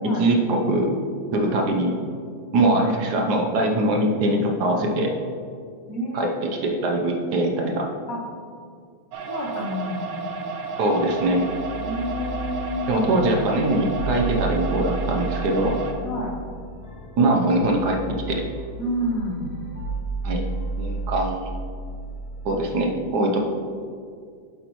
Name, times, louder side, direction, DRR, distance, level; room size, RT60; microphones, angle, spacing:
voice 1, 0.0-0.9 1.3-2.0 2.5-5.1 6.1-7.9 10.8-11.4 12.9-15.8 17.2-18.0 18.3-18.4 20.2-20.4 20.8-21.5 22.4-23.4, right 1 dB, 60° right, 2 dB, 1.3 m, -22 dB
voice 2, 5.9-6.3 8.1-8.2 9.3-10.1 11.8-13.1 16.0-16.4 18.8-19.6, equal, 50° left, 0 dB, 1.3 m, -29 dB
sound 1, 9.1-15.9, right 4 dB, 85° right, 1.6 m, -32 dB
sound 2, 11.0-22.7, right 2 dB, 30° left, 1.9 m, -33 dB
8.2 x 7.9 x 3.0 m, 2.2 s
omnidirectional pair, 2.2 m